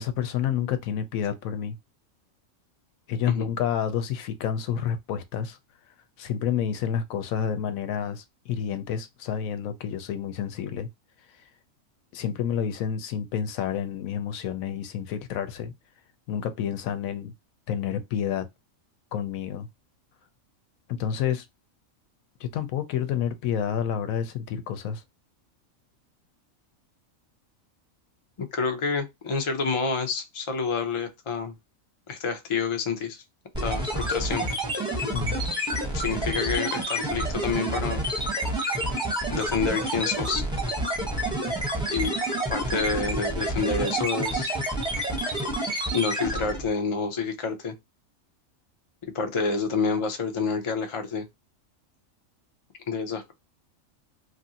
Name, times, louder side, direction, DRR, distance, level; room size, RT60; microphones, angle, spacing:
voice 1, 0.0-1.8 3.1-5.6 6.2-10.9 12.1-15.7 16.3-17.3 17.7-18.4 19.1-19.7 20.9-21.4 22.4-25.0 35.1-35.4, left 8 dB, 85° left, 1.0 m, -29 dB
voice 2, 28.4-31.5 32.1-33.2 33.6-34.5 35.9-38.0 39.3-40.4 41.9-42.1 42.5-44.5 45.9-47.7 49.1-51.3 52.9-53.3, left 5 dB, 50° left, 0.3 m, -28 dB
sound 1, 33.5-46.7, right 1 dB, 5° right, 0.7 m, -28 dB
3.0 x 2.5 x 2.7 m
omnidirectional pair, 1.4 m